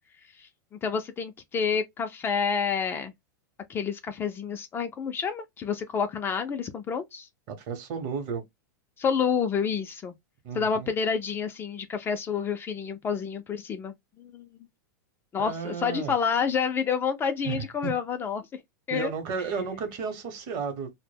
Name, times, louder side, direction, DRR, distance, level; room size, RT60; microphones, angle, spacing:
voice 1, 0.8-3.1 3.7-7.3 9.0-10.1 10.5-14.5 15.3-18.6 18.9-19.1, left 6 dB, 20° left, 0.4 m, -29 dB
voice 2, 7.5-8.4 10.4-10.9 15.4-16.1 17.4-17.9 18.9-20.9, right 5 dB, 50° right, 0.8 m, -33 dB
2.1 x 2.0 x 3.3 m
hypercardioid pair, 125°, 10 cm